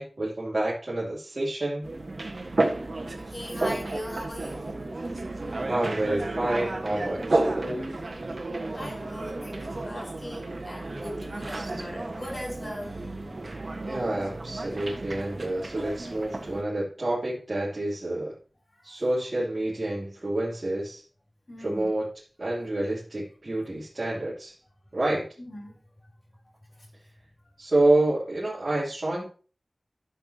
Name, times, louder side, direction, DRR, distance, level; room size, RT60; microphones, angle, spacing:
voice 1, 0.0-1.8 5.7-7.9 11.5-11.7 13.8-18.3 18.8-21.0 21.6-22.1 22.4-24.5 24.9-25.3 27.6-29.2, right 1 dB, 50° right, 3.1 m, -28 dB
sound 1, 1.8-16.6, right 2 dB, 65° right, 1.5 m, -32 dB
voice 2, 3.3-4.9 8.7-13.1 21.5-21.9 25.4-25.8 26.8-26.9, equal, 45° left, 3.5 m, -39 dB
12.5 x 6.7 x 2.9 m
wide cardioid pair, 55°, 0 cm